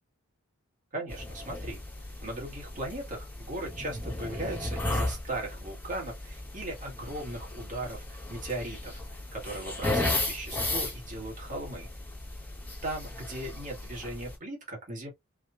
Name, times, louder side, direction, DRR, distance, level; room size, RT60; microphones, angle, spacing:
voice 1, 0.9-1.8 2.2-11.9 12.8-15.1, right 1 dB, 35° right, 1.9 m, -38 dB
sound 1, 1.1-14.4, left 2 dB, 10° left, 1.5 m, -35 dB
4.9 x 2.6 x 2.6 m
head